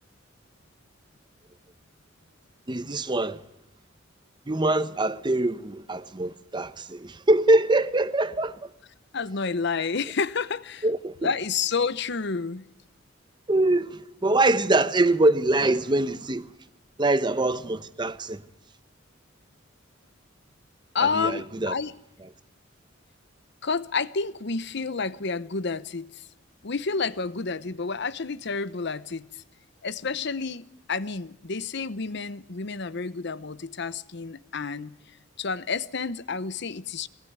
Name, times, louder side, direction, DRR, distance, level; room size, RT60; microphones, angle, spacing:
voice 1, 2.7-3.4 4.5-8.7 10.8-11.3 13.5-16.5 17.0-18.4 21.1-21.7, right 2 dB, 25° right, 0.8 m, -24 dB
voice 2, 9.1-10.9 11.2-12.7 20.9-22.0 23.6-26.2 26.6-29.3 29.8-34.9 35.4-37.1, left 4 dB, 60° left, 0.8 m, -29 dB
23.0 x 18.5 x 9.6 m
head